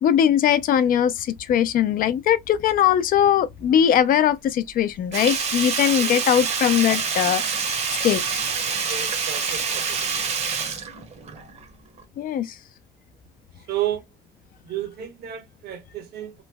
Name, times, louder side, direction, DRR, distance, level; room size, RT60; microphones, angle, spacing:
voice 1, 0.0-7.4 8.0-8.2 12.2-12.5, left 9 dB, 55° left, 0.5 m, -20 dB
Sink (filling or washing), 5.1-11.6 12.0-12.1, right 5 dB, 40° right, 0.8 m, -26 dB
voice 2, 8.9-10.1 13.7-14.0 14.7-16.4, right 11 dB, 70° right, 1.1 m, -32 dB
3.0 x 2.1 x 3.4 m
cardioid pair, 110°, 17 cm